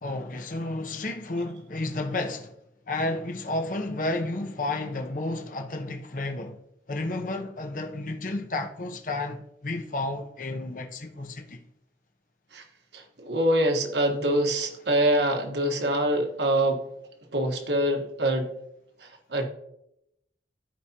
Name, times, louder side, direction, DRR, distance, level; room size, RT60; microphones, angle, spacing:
voice 1, 0.0-2.5 2.9-6.6 6.9-11.6, left 2 dB, 45° left, 0.7 m, -31 dB
voice 2, 12.9-16.9 17.3-18.5 19.0-19.5, right 1 dB, 75° right, 1.3 m, -25 dB
14.0 x 4.8 x 2.9 m
head